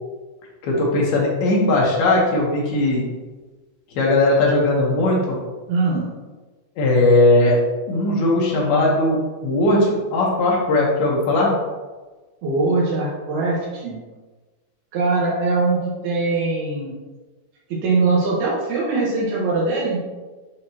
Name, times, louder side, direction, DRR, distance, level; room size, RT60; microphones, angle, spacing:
voice 1, 0.6-3.0 3.9-5.4 6.8-7.6 7.9-11.5, left 2 dB, 75° left, -4 dB, 3.1 m, -18 dB
voice 2, 5.7-6.0 12.4-14.0 14.9-16.9 17.7-20.0, right 3 dB, 80° right, -6 dB, 3.3 m, -21 dB
9.4 x 4.2 x 2.9 m, 1.3 s
omnidirectional pair, 4.5 m